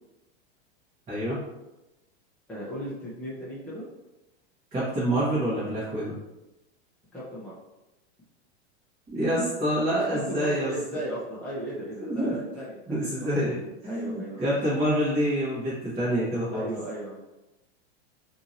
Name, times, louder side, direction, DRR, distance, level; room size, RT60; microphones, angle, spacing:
voice 1, 1.1-1.4 4.7-6.2 9.1-10.7 12.1-12.4 12.9-16.7, equal, 20° right, -11 dB, 1.0 m, -27 dB
voice 2, 2.5-3.8 7.1-7.5 9.9-13.3 13.9-14.5 16.5-17.2, right 1 dB, 5° left, -8 dB, 0.6 m, -35 dB
2.8 x 2.7 x 2.5 m, 0.99 s
supercardioid pair, 135°, 33 cm